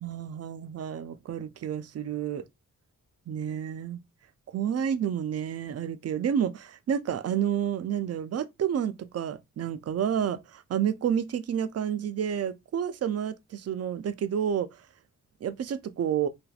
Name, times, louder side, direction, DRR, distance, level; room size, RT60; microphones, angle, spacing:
voice 1, 0.0-2.4 3.3-4.0 4.5-10.4 10.7-14.7 15.4-16.3, right 9 dB, 50° right, 0.4 m, -30 dB
3.3 x 2.0 x 2.4 m
cardioid pair, 55°, 32 cm